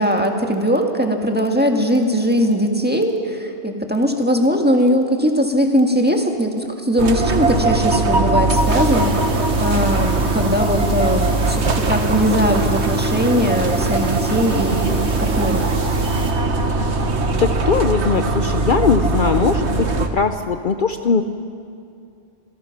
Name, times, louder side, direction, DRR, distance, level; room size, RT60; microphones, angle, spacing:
voice 1, 0.0-15.6, equal, 10° right, 2 dB, 1.8 m, -20 dB
sound 1, 7.0-20.1, right 3 dB, 80° right, 1.6 m, -20 dB
sound 2, 8.5-16.3, right 1 dB, 55° right, 3.3 m, -36 dB
voice 2, 17.3-19.9 20.1-21.2, left 5 dB, 55° left, 8 dB, 0.8 m, -19 dB
27.0 x 18.0 x 5.9 m, 2.4 s
omnidirectional pair, 1.1 m